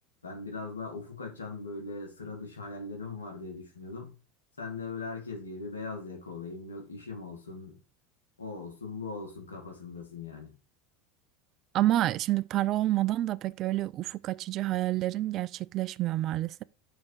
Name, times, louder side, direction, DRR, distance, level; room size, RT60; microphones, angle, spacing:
voice 1, 0.2-4.2 4.6-7.8 8.4-10.5, left 3 dB, 90° left, 2.0 m, -40 dB
voice 2, 11.7-16.6, right 15 dB, 50° right, 0.3 m, -28 dB
6.1 x 4.2 x 4.6 m
hypercardioid pair, 80°, 0 cm